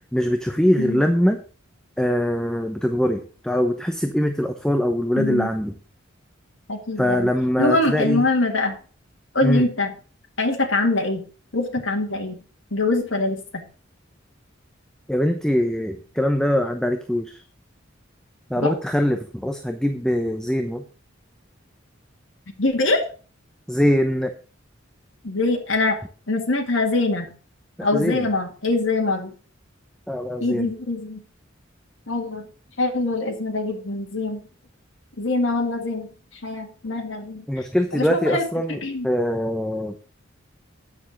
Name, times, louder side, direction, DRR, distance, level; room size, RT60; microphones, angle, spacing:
voice 1, 0.1-1.4 2.0-5.7 7.0-8.2 9.4-9.7 15.1-17.4 18.5-20.8 23.7-24.3 27.8-28.3 30.1-30.7 37.5-38.8 39.0-39.9, equal, 5° left, 6 dB, 0.8 m, -22 dB
voice 2, 5.2-5.5 6.7-7.3 7.6-8.8 9.3-9.9 10.4-11.2 11.5-12.4 12.7-13.6 18.6-18.7 22.6-23.0 25.2-26.0 26.3-27.3 27.8-29.3 30.4-31.2 32.1-32.4 32.8-34.4 35.2-36.1 36.4-37.6 37.9-38.4 38.8-39.1, left 2 dB, 75° left, 1 dB, 1.9 m, -23 dB
9.6 x 6.9 x 6.1 m, 0.38 s
head